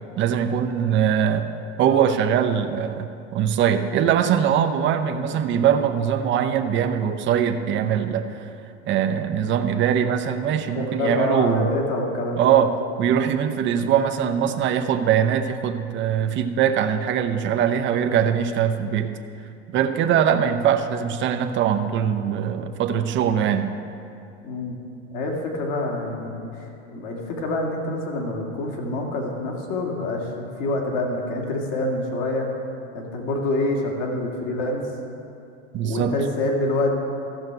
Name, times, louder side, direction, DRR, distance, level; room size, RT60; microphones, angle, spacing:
voice 1, 0.2-1.5 1.8-8.5 8.9-11.7 12.4-19.1 19.7-23.7 35.7-36.2, right 8 dB, 30° right, 7 dB, 0.7 m, -22 dB
voice 2, 10.7-12.5 24.4-24.8 25.1-32.5 32.9-34.8 35.8-36.9, left 2 dB, 50° left, 0 dB, 2.2 m, -26 dB
14.5 x 6.5 x 4.7 m, 2.6 s
hypercardioid pair, 110°, 38 cm